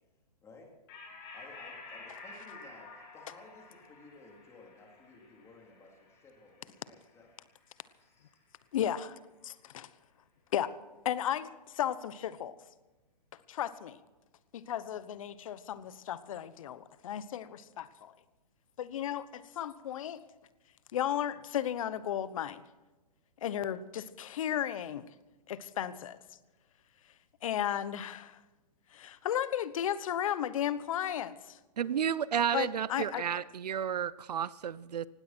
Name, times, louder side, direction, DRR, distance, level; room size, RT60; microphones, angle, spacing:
voice 1, 0.4-0.7 1.3-7.3 8.0-8.3, left 3 dB, 15° left, 0 dB, 3.6 m, -55 dB
sound 1, 0.9-7.8, left 3 dB, 35° left, 6.5 m, -51 dB
voice 2, 8.7-9.9 10.5-10.7 11.0-11.5 11.7-12.5 13.5-14.0 14.5-18.1 18.8-20.2 20.9-22.6 23.4-25.1 25.5-26.2 27.4-28.4 28.9-31.6 32.5-33.2, left 10 dB, 55° left, 15 dB, 1.1 m, -34 dB
voice 3, 31.8-35.1, right 8 dB, 75° right, 19 dB, 0.7 m, -32 dB
19.0 x 16.5 x 4.5 m, 1.1 s
hypercardioid pair, 145°, 21 cm